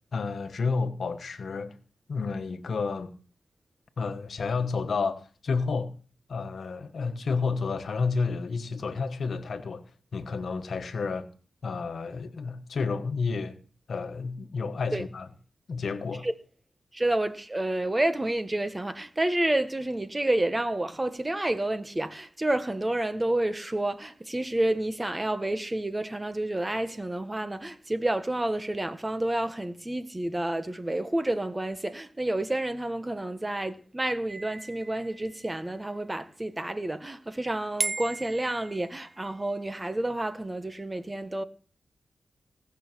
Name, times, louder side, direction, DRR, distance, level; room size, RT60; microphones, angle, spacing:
voice 1, 0.1-1.8 2.1-3.1 4.0-5.9 6.3-9.8 10.1-11.3 11.6-13.6 13.9-15.3 15.7-16.3, left 4 dB, 70° left, 1.3 m, -30 dB
voice 2, 16.9-41.4, right 1 dB, 25° right, 1.4 m, -29 dB
sound 1, 34.3-35.8 37.8-39.4, right 3 dB, 45° right, 0.8 m, -37 dB
18.0 x 6.4 x 6.2 m
cardioid pair, 45°, 0 cm